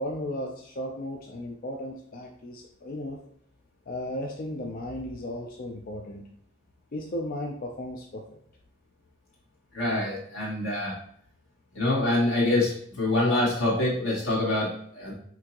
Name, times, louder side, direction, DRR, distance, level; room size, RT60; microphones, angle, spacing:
voice 1, 0.0-3.2 3.9-6.3 6.9-8.3, left 1 dB, 45° left, 1 dB, 0.5 m, -35 dB
voice 2, 9.7-10.9 11.7-15.1, left 2 dB, 85° left, -5 dB, 1.9 m, -25 dB
5.8 x 2.8 x 2.9 m, 0.64 s
head